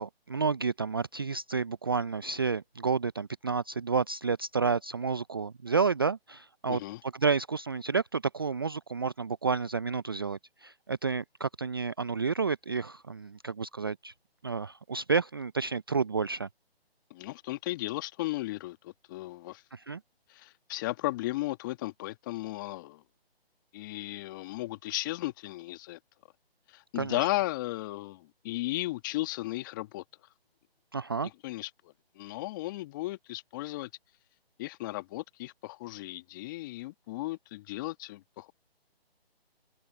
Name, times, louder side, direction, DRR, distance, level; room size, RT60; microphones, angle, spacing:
voice 1, 0.0-14.1 14.4-16.5 19.7-20.0 27.0-27.2 30.9-31.3, right 5 dB, 25° right, 0.5 m, -30 dB
voice 2, 6.7-7.0 17.1-19.6 20.3-23.0 23.7-26.0 26.7-30.0 31.4-31.7 32.1-33.9 34.6-38.5, left 18 dB, 20° left, 1.3 m, -35 dB
open air
figure-of-eight pair, 150°, 31 cm